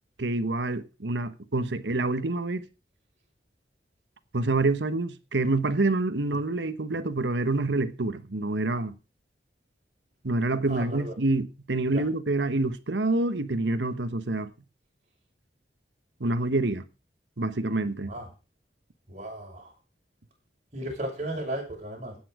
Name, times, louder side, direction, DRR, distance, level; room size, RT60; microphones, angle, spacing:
voice 1, 0.2-2.6 4.3-8.9 10.2-14.5 16.2-16.8 17.4-18.1, right 2 dB, 90° right, 1.2 m, -27 dB
voice 2, 10.7-11.1 11.9-12.0 18.1-18.3 19.1-19.7 20.7-22.2, right 1 dB, 40° right, 6.4 m, -35 dB
16.0 x 8.7 x 4.9 m
head